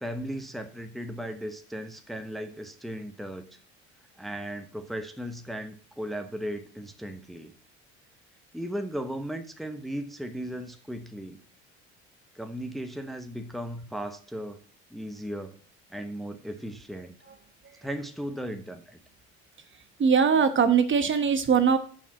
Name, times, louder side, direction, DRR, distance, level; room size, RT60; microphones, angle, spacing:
voice 1, 0.0-3.6 4.2-7.5 8.5-11.4 12.3-14.6 14.9-15.5 15.9-17.2 17.8-19.0, equal, ahead, 6 dB, 1.1 m, -36 dB
voice 2, 20.0-21.8, right 6 dB, 35° right, 9 dB, 1.1 m, -21 dB
7.1 x 5.7 x 7.1 m, 0.43 s
hypercardioid pair, 75°, 33 cm